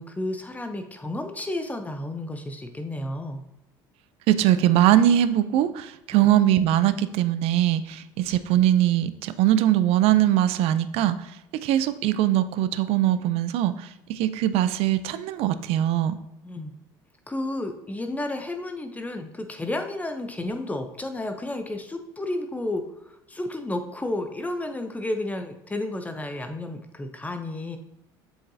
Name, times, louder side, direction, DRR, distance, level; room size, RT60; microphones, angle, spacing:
voice 1, 0.0-3.4 6.1-6.3 16.4-16.7 17.3-27.8, left 1 dB, 15° left, 6 dB, 0.7 m, -32 dB
voice 2, 4.3-11.3 11.6-16.2, right 12 dB, 65° right, 13 dB, 0.5 m, -21 dB
7.3 x 4.8 x 2.7 m, 0.90 s
hypercardioid pair, 80°, 11 cm